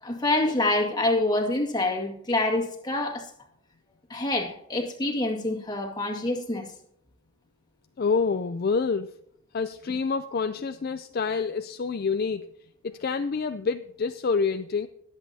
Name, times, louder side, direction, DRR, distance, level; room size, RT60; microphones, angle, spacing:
voice 1, 0.0-3.3 4.1-6.7, left 2 dB, 20° left, 1 dB, 1.9 m, -26 dB
voice 2, 8.0-9.2 9.5-12.5 12.8-14.9, left 5 dB, 45° left, 9 dB, 0.4 m, -27 dB
21.5 x 8.1 x 2.8 m, 0.73 s
head